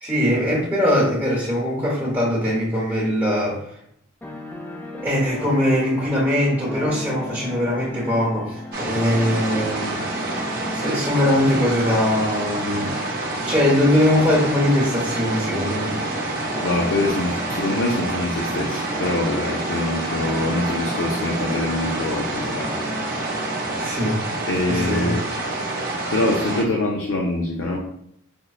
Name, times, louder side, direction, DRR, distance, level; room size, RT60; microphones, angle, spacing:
voice 1, 0.0-3.6 5.0-10.0 10.7-13.0 13.5-15.9 23.8-24.2 24.7-25.1, left 1 dB, 15° right, -7 dB, 1.0 m, -21 dB
sound 1, 4.2-23.8, left 1 dB, 10° left, 0.3 m, -36 dB
sound 2, 8.7-26.6, right 2 dB, 45° right, 0.6 m, -28 dB
voice 2, 16.6-22.7 24.5-25.2 26.1-27.8, left 2 dB, 65° left, -1 dB, 0.5 m, -24 dB
5.1 x 2.1 x 2.3 m, 0.71 s
head